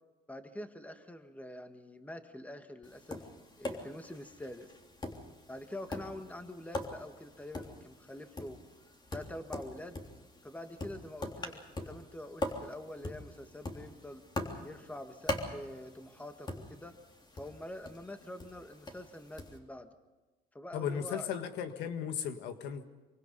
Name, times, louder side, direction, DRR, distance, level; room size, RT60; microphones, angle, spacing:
voice 1, 0.3-3.2 3.6-4.7 5.5-8.5 9.1-10.0 10.4-14.2 14.6-17.0 17.3-19.9 20.5-21.3, left 1 dB, 10° left, 7 dB, 1.8 m, -45 dB
Tap, 2.8-19.6, left 1 dB, 25° left, 3.4 m, -43 dB
voice 2, 20.7-22.8, left 8 dB, 85° left, 8 dB, 1.7 m, -36 dB
25.0 x 24.5 x 5.4 m, 1.2 s
cardioid pair, 110°, 17 cm